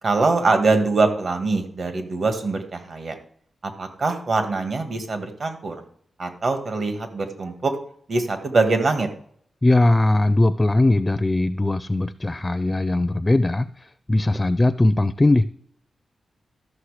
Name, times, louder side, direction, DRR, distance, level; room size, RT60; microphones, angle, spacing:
voice 1, 0.0-3.1 3.8-5.8 6.2-7.8 8.1-9.1, right 3 dB, 55° right, 7 dB, 1.7 m, -23 dB
voice 2, 9.6-15.4, left 2 dB, 20° left, 13 dB, 0.4 m, -20 dB
13.0 x 6.5 x 4.9 m, 0.62 s
cardioid pair, 90°, 0 cm